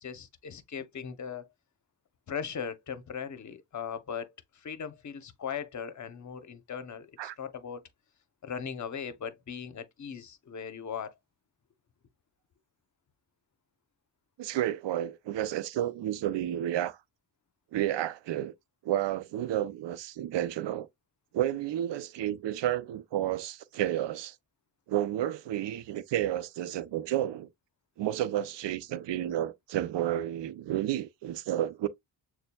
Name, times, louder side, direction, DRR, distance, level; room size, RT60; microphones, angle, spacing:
voice 1, 0.0-1.5 2.3-7.8 8.4-11.1, left 7 dB, 40° left, 0.8 m, -39 dB
voice 2, 14.4-17.0 17.7-18.5 18.8-20.9 21.3-24.4 24.9-27.5 28.0-31.9, right 12 dB, 65° right, 0.6 m, -31 dB
6.7 x 2.2 x 2.3 m
cardioid pair, 105°, 47 cm